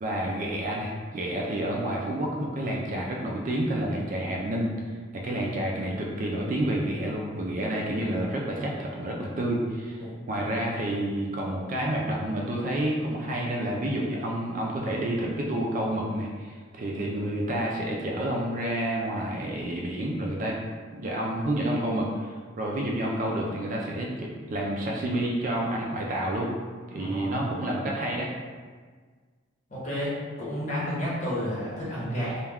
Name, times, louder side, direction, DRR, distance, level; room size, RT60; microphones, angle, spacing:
voice 1, 0.0-4.7 5.2-20.6 20.9-26.5 26.9-28.3, right 1 dB, 40° right, -2 dB, 0.3 m, -29 dB
voice 2, 26.9-27.4 29.7-32.4, equal, 40° left, -8 dB, 0.9 m, -31 dB
2.2 x 2.2 x 3.4 m, 1.5 s
head